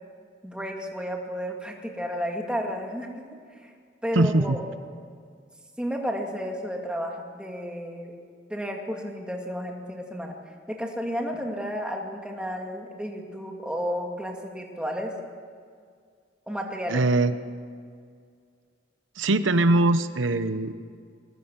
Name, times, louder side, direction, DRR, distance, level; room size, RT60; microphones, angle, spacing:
voice 1, 0.4-3.3 3.5-3.7 4.0-4.6 5.8-8.2 8.5-10.4 10.7-15.1 16.5-17.0, equal, 5° right, 1 dB, 2.2 m, -32 dB
voice 2, 4.1-4.6 16.9-17.4 19.2-20.7, right 2 dB, 90° right, 11 dB, 0.9 m, -22 dB
21.0 x 19.0 x 7.4 m, 2.1 s
head